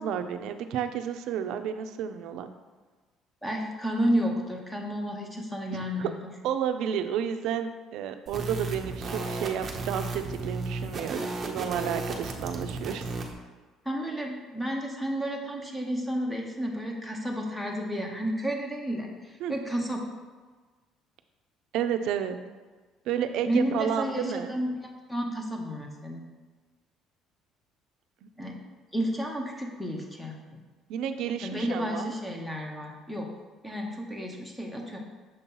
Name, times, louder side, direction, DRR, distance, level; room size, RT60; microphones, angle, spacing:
voice 1, 0.0-2.5 6.0-6.1 6.4-13.1 19.4-19.5 21.7-22.4 23.1-24.5 30.5-30.6 30.9-32.1, right 9 dB, 65° right, 8 dB, 0.4 m, -31 dB
voice 2, 3.4-6.1 13.8-20.0 23.5-26.3 28.4-28.6 28.9-30.3 31.4-33.3 33.6-35.0, equal, 5° left, 1 dB, 0.7 m, -31 dB
sound 1, 8.3-13.3, right 3 dB, 25° right, 0.6 m, -34 dB
6.5 x 2.9 x 5.4 m, 1.4 s
cardioid pair, 170°, 0 cm